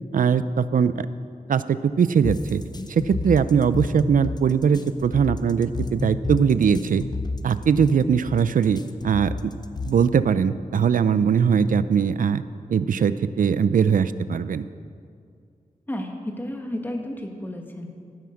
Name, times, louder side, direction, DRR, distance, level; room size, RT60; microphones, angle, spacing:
voice 1, 0.1-1.1 1.5-2.6 2.9-7.0 7.4-9.5 9.8-12.4 12.7-14.7, right 7 dB, 70° right, 14 dB, 0.5 m, -21 dB
sound 1, 2.2-10.3, left 3 dB, 30° left, 0.7 m, -31 dB
voice 2, 15.9-17.9, left 1 dB, 15° left, 3 dB, 1.6 m, -32 dB
16.0 x 9.3 x 6.4 m, 2.3 s
wide cardioid pair, 135°, 14 cm